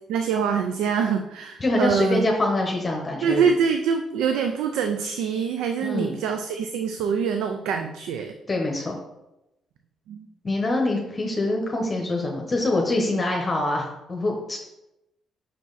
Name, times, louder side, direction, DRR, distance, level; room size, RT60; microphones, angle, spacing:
voice 1, 0.1-2.3 3.2-8.3 10.1-10.3, right 6 dB, 90° right, 6 dB, 0.4 m, -25 dB
voice 2, 1.6-3.5 5.8-6.1 8.5-9.0 10.4-14.6, left 2 dB, 30° left, 1 dB, 1.1 m, -25 dB
5.8 x 4.7 x 4.1 m, 0.91 s
cardioid pair, 90°, 0 cm